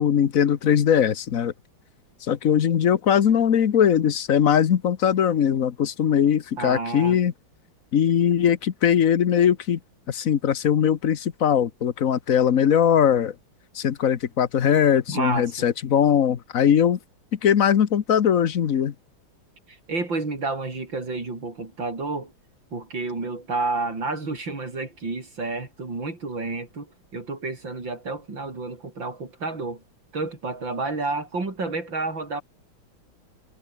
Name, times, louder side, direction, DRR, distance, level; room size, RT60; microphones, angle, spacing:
voice 1, 0.0-1.5 2.3-7.3 7.9-9.8 10.1-13.3 13.7-17.0 17.4-18.9, left 8 dB, 50° left, 1.3 m, -20 dB
voice 2, 6.6-7.2 15.1-15.7 19.7-22.3 22.7-29.8 30.1-32.4, right 3 dB, 65° right, 5.8 m, -30 dB
omnidirectional pair, 2.2 m